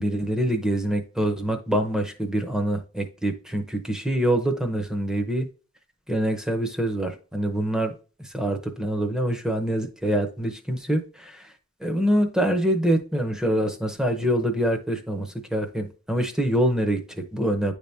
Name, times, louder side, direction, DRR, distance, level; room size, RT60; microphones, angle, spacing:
voice 1, 0.0-5.5 6.1-7.9 8.2-11.5 11.8-17.7, right 1 dB, 5° right, 4 dB, 0.7 m, -25 dB
9.9 x 3.4 x 2.7 m, 0.36 s
head